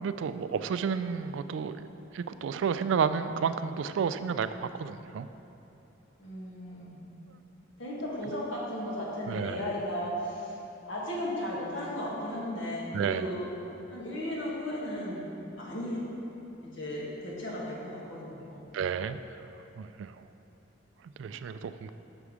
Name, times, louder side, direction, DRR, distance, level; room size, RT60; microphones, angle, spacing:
voice 1, 0.0-1.9 2.1-5.3 9.3-9.7 12.9-13.2 18.7-19.2 19.8-20.1 21.2-21.9, right 6 dB, 80° right, 12 dB, 0.3 m, -31 dB
voice 2, 6.2-7.0 7.8-10.6 10.9-13.4 13.9-15.2 15.5-16.0 16.6-18.6, left 1 dB, 80° left, -5 dB, 1.7 m, -35 dB
6.9 x 6.1 x 4.8 m, 2.9 s
head